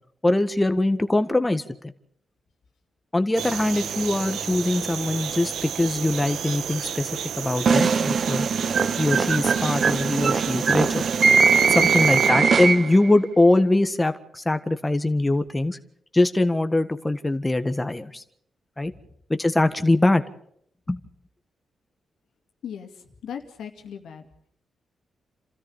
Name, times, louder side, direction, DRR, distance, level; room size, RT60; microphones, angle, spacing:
voice 1, 0.2-1.9 3.1-7.1 7.4-8.5 9.0-11.0 11.7-15.8 16.1-18.2 18.8-18.9 19.3-20.2 20.9-21.0, left 2 dB, 15° left, 9 dB, 1.5 m, -22 dB
sound 1, 3.3-12.3, right 8 dB, 85° right, 1.4 m, -32 dB
sound 2, 7.7-13.1, right 5 dB, 55° right, 1.2 m, -21 dB
voice 2, 22.6-24.3, left 8 dB, 80° left, 5 dB, 2.4 m, -38 dB
29.0 x 13.5 x 7.2 m, 0.68 s
cardioid pair, 75°, 0 cm